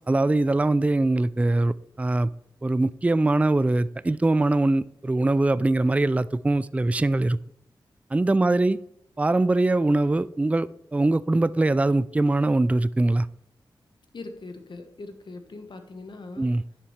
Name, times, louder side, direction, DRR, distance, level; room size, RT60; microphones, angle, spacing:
voice 1, 0.1-2.3 2.6-7.4 8.1-8.8 9.2-13.3 16.4-16.6, right 2 dB, 15° right, 0.3 m, -22 dB
voice 2, 8.3-8.8 14.1-16.5, left 3 dB, 60° left, 1.3 m, -41 dB
10.5 x 7.2 x 3.3 m
cardioid pair, 40°, 9 cm